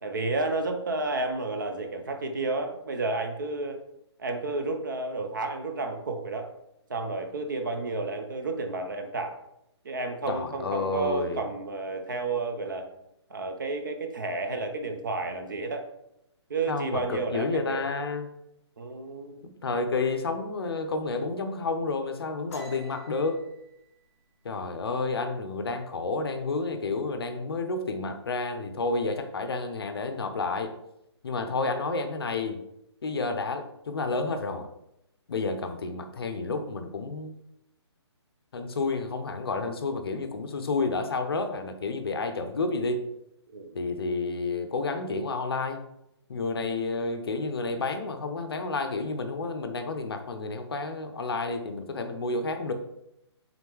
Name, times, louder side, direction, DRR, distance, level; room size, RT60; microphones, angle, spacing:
voice 1, 0.0-3.8 4.2-6.5 6.9-9.3 9.8-12.9 13.3-15.9 16.5-17.8 18.8-19.4 31.4-31.6 43.5-43.7, right 3 dB, 45° right, 5 dB, 0.5 m, -31 dB
voice 2, 10.3-11.4 16.7-18.3 19.4-23.4 24.4-30.7 31.2-32.6 33.0-34.7 35.3-37.4 38.5-43.0 43.7-45.8 46.3-52.7, left 3 dB, 60° left, 7 dB, 0.5 m, -30 dB
sound 1, 22.5-25.9 26.3-26.6 27.0-27.5 27.8-28.5, equal, 30° left, 0.9 m, -48 dB
3.7 x 3.0 x 3.5 m, 0.83 s
hypercardioid pair, 175°, 15 cm